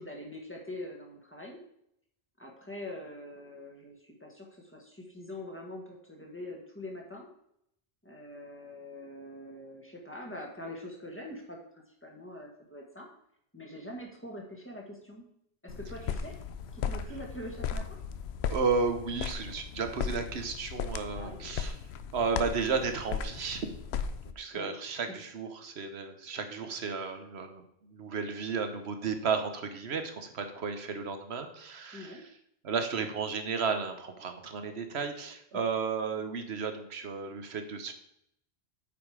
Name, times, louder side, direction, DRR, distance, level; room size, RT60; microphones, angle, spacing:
voice 1, 0.0-1.6 2.4-7.3 8.0-11.6 12.0-13.1 13.5-15.3 15.6-16.4 16.7-18.0 21.1-21.4 24.5-24.7 25.1-25.2 31.9-32.2, left 1 dB, 10° left, 0 dB, 1.7 m, -44 dB
sound 1, 15.7-24.3, left 7 dB, 85° left, 0.9 m, -36 dB
voice 2, 18.5-21.7 22.1-23.7 24.4-32.2 32.6-37.9, right 5 dB, 85° right, 7 dB, 1.3 m, -33 dB
8.5 x 5.3 x 4.9 m, 0.76 s
omnidirectional pair, 1.1 m